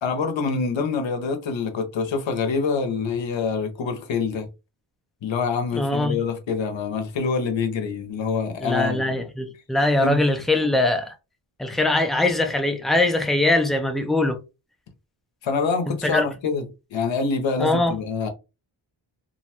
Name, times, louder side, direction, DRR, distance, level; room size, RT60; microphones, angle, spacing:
voice 1, 0.0-4.5 5.2-9.2 10.0-10.2 15.4-18.3, left 5 dB, 65° left, 0.8 m, -26 dB
voice 2, 5.7-6.2 8.6-11.1 11.6-14.4 16.0-16.2 17.6-18.0, left 2 dB, ahead, 0.4 m, -22 dB
2.6 x 2.2 x 2.8 m
cardioid pair, 80°, 49 cm